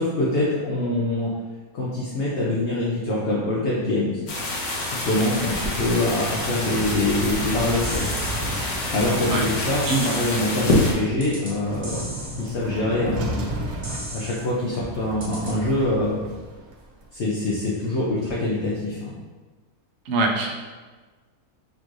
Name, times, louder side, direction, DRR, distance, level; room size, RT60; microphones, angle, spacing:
voice 1, 0.0-1.3 1.7-4.2 4.9-8.1 8.9-12.1 12.4-13.5 14.1-16.2 17.1-19.2, left 2 dB, 55° left, -5 dB, 0.9 m, -24 dB
sound 1, 4.3-10.9, left 2 dB, 90° left, 1.3 m, -27 dB
sound 2, 5.4-17.1, right 1 dB, 85° right, 1.2 m, -34 dB
sound 3, 7.8-8.5 9.8-10.5 11.2-11.6 11.8-12.5 13.8-14.5 15.2-15.6, right 1 dB, 40° right, 0.5 m, -36 dB
voice 2, 20.1-20.5, right 3 dB, 60° right, 1 dB, 0.9 m, -23 dB
6.1 x 3.1 x 2.5 m, 1.3 s
omnidirectional pair, 1.5 m